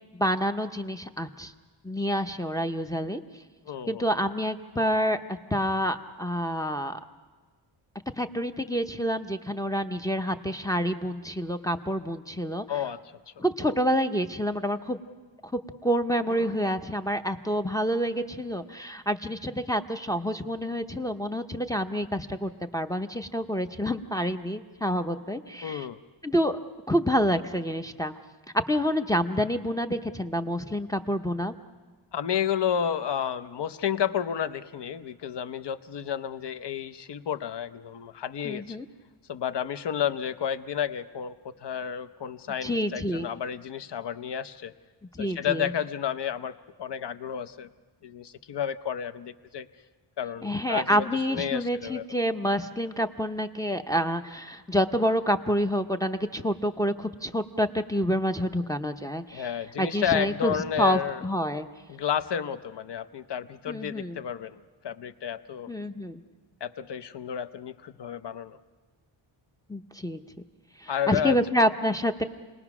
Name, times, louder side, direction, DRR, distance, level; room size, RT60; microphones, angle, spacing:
voice 1, 0.1-1.5 1.8-3.2 3.9-5.2 5.5-7.0 8.2-12.7 13.4-15.0 15.4-25.9 26.2-26.6 26.9-28.1 28.5-31.5 38.4-38.9 42.6-43.3 45.1-45.7 50.4-59.5 59.8-61.7 63.7-64.2 65.7-66.2 69.7-70.2 70.8-72.2, equal, 5° left, 5 dB, 0.6 m, -28 dB
voice 2, 3.6-4.1 12.7-13.0 13.4-13.8 16.3-16.5 25.6-26.0 32.1-38.8 39.3-44.7 45.2-47.7 48.0-49.7 50.2-52.0 59.3-61.2 61.9-65.7 66.6-68.6 70.9-71.4, left 8 dB, 55° left, 12 dB, 0.8 m, -31 dB
29.0 x 19.5 x 6.0 m, 1.4 s
wide cardioid pair, 165°, 49 cm